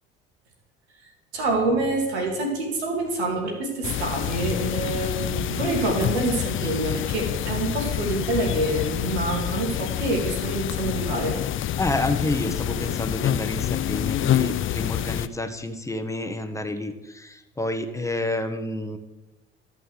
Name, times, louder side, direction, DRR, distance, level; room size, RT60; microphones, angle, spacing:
voice 1, 1.3-11.4, right 2 dB, 80° right, 0 dB, 3.0 m, -26 dB
sound 1, 3.8-15.3, left 11 dB, 40° left, 0.5 m, -27 dB
voice 2, 11.8-19.0, left 2 dB, 10° left, 7 dB, 1.4 m, -29 dB
12.5 x 5.6 x 7.6 m, 1.0 s
hypercardioid pair, 60°, 32 cm